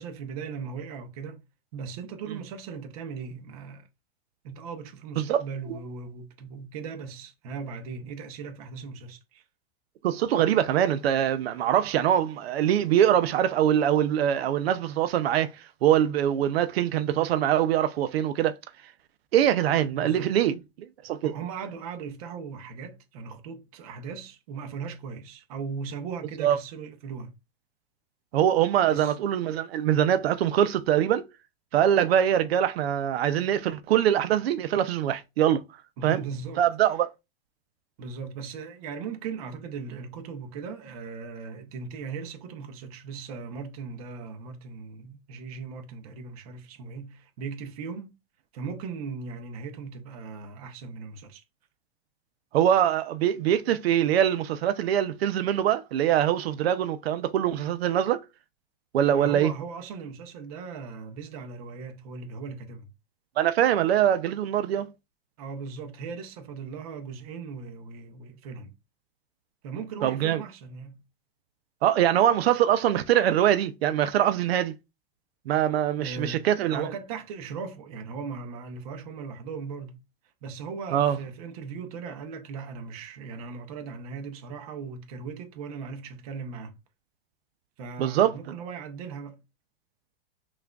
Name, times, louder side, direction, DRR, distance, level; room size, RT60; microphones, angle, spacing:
voice 1, 0.0-1.4 1.7-3.9 4.4-9.4 19.9-20.3 21.2-27.3 28.9-29.2 36.0-36.6 38.0-48.2 48.5-51.4 59.1-62.9 65.4-68.7 69.6-71.0 76.0-80.0 80.4-86.8 87.8-89.4, right 5 dB, 40° right, 0.7 m, -38 dB
voice 2, 10.0-15.5 15.8-18.5 19.3-20.6 21.0-21.3 26.4-26.6 28.3-31.2 31.7-35.6 36.0-36.2 36.6-37.1 52.5-58.2 58.9-59.5 63.4-64.9 70.0-70.4 71.8-74.7 75.5-76.8 80.9-81.2 88.0-88.4, right 10 dB, 85° right, 0.6 m, -23 dB
5.8 x 2.4 x 2.3 m
supercardioid pair, 170°, 30 cm